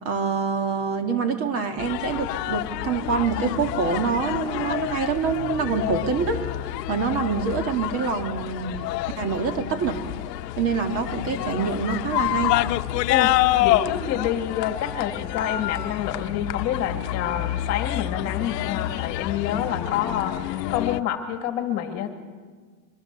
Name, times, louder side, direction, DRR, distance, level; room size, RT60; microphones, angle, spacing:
voice 1, 0.0-10.0 10.6-12.6, right 5 dB, 30° right, 6 dB, 1.7 m, -26 dB
sound 1, 1.8-21.0, left 15 dB, 85° left, 1.0 m, -28 dB
voice 2, 13.6-20.4 20.7-22.1, left 10 dB, 35° left, 6 dB, 1.8 m, -27 dB
25.0 x 23.5 x 6.7 m, 1.5 s
supercardioid pair, 180°, 47 cm